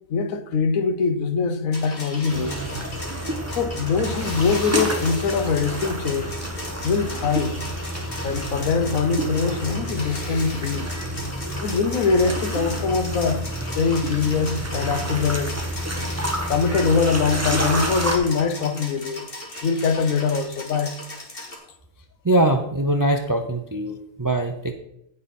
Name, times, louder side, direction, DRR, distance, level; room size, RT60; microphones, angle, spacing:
voice 1, 0.1-2.6 3.5-6.3 6.8-7.6 8.2-10.9 11.6-15.6 16.5-19.3 19.6-21.0, left 5 dB, 70° left, 1.3 m, -23 dB
sound 1, 1.7-21.6, left 2 dB, 40° left, 2.1 m, -37 dB
sound 2, 2.3-18.2, right 1 dB, 10° right, 1.2 m, -29 dB
voice 2, 22.2-24.7, right 1 dB, 30° right, 0.3 m, -22 dB
15.0 x 5.1 x 4.3 m
omnidirectional pair, 1.5 m